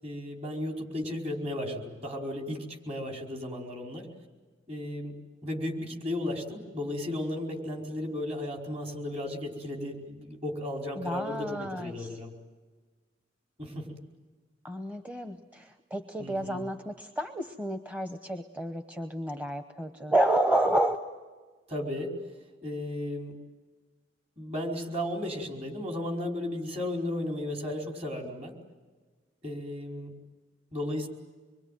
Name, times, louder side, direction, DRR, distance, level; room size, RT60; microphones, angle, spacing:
voice 1, 0.0-4.1 4.7-5.1 5.4-12.3 13.6-14.0 16.2-16.6 21.7-22.1 22.6-23.3 24.4-28.5 29.4-30.1 30.7-31.1, left 1 dB, 35° right, 1 dB, 4.9 m, -34 dB
voice 2, 11.0-12.2 14.6-21.0, right 1 dB, 10° right, 6 dB, 1.0 m, -30 dB
26.0 x 23.5 x 9.3 m, 1.4 s
head